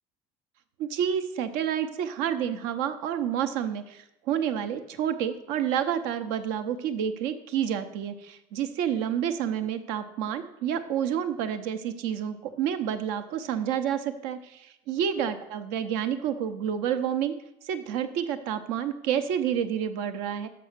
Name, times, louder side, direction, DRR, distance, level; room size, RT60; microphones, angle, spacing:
voice 1, 0.8-17.3 17.6-20.5, right 9 dB, 75° right, 8 dB, 0.7 m, -29 dB
6.8 x 5.5 x 6.6 m, 0.89 s
supercardioid pair, 125°, 14 cm